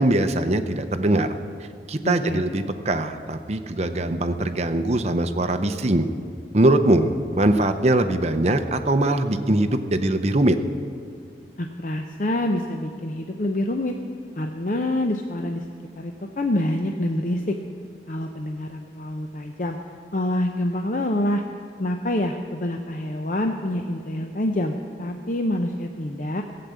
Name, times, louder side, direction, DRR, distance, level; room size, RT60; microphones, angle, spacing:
voice 1, 0.0-1.3 1.9-6.1 6.5-10.6, right 1 dB, 35° right, 8 dB, 0.7 m, -21 dB
voice 2, 2.0-2.4 11.6-14.0 14.4-15.7 15.9-17.6 18.1-19.8 20.1-21.4 21.8-26.4, left 1 dB, 45° left, 4 dB, 0.6 m, -26 dB
15.5 x 7.7 x 8.2 m, 2.3 s
head